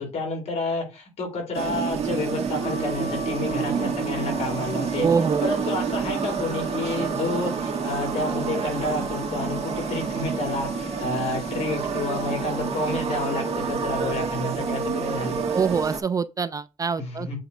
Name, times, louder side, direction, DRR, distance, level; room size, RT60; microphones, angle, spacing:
voice 1, 0.0-5.1 5.4-15.4 17.0-17.4, left 3 dB, 55° left, 3.3 m, -30 dB
sound 1, 1.5-16.0, right 6 dB, 50° right, 1.7 m, -28 dB
Wind instrument woodwind instrument, 2.6-14.2, left 5 dB, 75° left, 0.9 m, -40 dB
voice 2, 5.0-5.5 15.5-17.4, right 6 dB, 25° right, 0.3 m, -24 dB
7.9 x 3.5 x 5.4 m
cardioid pair, 150°, 13 cm